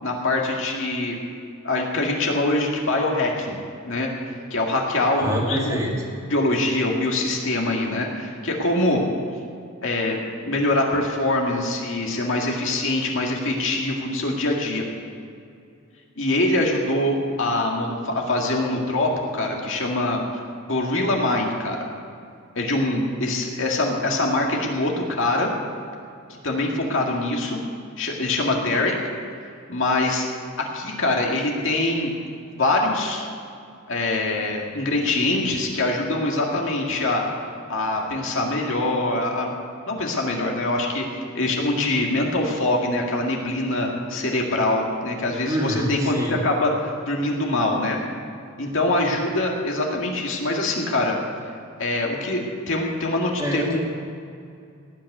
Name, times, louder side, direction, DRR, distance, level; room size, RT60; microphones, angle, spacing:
voice 1, 0.0-1.2 1.6-3.6 3.8-4.1 4.5-5.8 6.3-9.0 9.8-10.2 10.4-14.8 16.2-20.2 20.7-21.8 22.6-25.5 26.4-27.6 28.0-28.9 29.7-30.3 30.6-32.1 32.6-33.2 33.9-37.2 37.7-39.5 39.9-41.1 41.3-48.0 48.6-51.2 51.4-51.5 51.8-53.8, left 2 dB, 60° left, 0 dB, 2.2 m, -24 dB
voice 2, 5.1-5.9 45.5-46.4 53.4-53.8, equal, 15° right, -2 dB, 2.2 m, -25 dB
18.0 x 6.5 x 9.4 m, 2.4 s
head